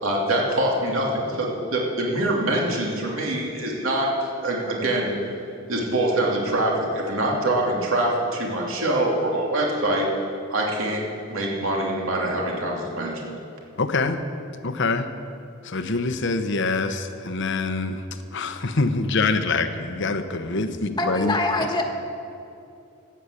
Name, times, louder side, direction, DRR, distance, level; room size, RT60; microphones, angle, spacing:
voice 1, 0.0-4.1 4.4-5.1 5.7-10.1 10.5-13.3, right 1 dB, 75° right, -2 dB, 2.8 m, -24 dB
voice 2, 13.8-14.2 14.6-15.1 15.6-18.0 18.3-21.8, left 3 dB, 60° left, 9 dB, 0.9 m, -25 dB
voice 3, 21.0-21.8, left 2 dB, 20° left, 2 dB, 1.4 m, -24 dB
13.0 x 8.9 x 8.4 m, 2.7 s
head